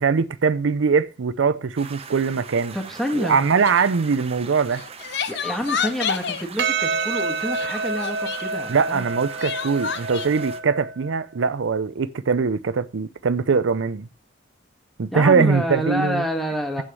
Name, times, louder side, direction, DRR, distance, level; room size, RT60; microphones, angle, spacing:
voice 1, 0.0-2.8 3.1-4.8 8.7-14.1 15.0-16.3, right 5 dB, 80° right, 0.5 m, -21 dB
sound 1, 1.8-10.6, right 5 dB, 30° right, 0.8 m, -41 dB
voice 2, 2.7-3.5 5.3-9.1 15.1-16.8, equal, ahead, 1.6 m, -27 dB
Crying sobbing, 3.6-3.9 4.7-6.4 7.5-8.5 9.4-10.3, left 7 dB, 60° left, 0.7 m, -29 dB
Percussion, 6.6-11.2, right 4 dB, 60° right, 0.9 m, -28 dB
7.9 x 6.2 x 7.5 m
head